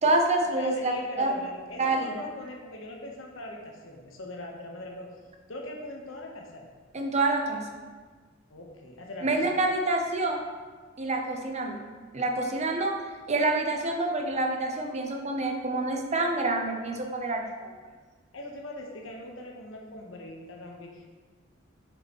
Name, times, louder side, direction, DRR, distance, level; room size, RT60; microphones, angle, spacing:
voice 1, 0.0-1.3 1.8-2.1 6.9-7.8 9.2-10.4 11.0-11.9 12.1-13.0 13.3-17.7, right 2 dB, 35° right, 3 dB, 0.7 m, -27 dB
voice 2, 0.5-5.1 5.5-6.7 8.5-9.6 18.3-21.1, left 1 dB, 80° left, 0 dB, 1.1 m, -41 dB
6.7 x 5.4 x 3.0 m, 1.4 s
head